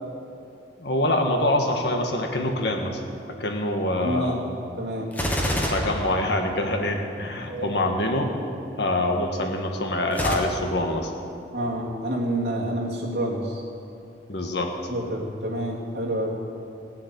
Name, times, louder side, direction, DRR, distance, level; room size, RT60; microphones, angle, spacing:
voice 1, 0.8-3.0 3.3-4.5 5.7-8.4 8.7-11.1 14.3-14.7, left 1 dB, 65° left, 3 dB, 1.7 m, -25 dB
voice 2, 4.0-4.4 4.8-5.1 7.5-7.7 11.5-13.6 14.9-16.4, right 1 dB, 65° right, -3 dB, 2.7 m, -28 dB
Gunshot gunfire, 5.1-6.9 10.1-10.3, equal, 10° left, 1.4 m, -26 dB
16.5 x 7.4 x 9.7 m, 2.7 s
head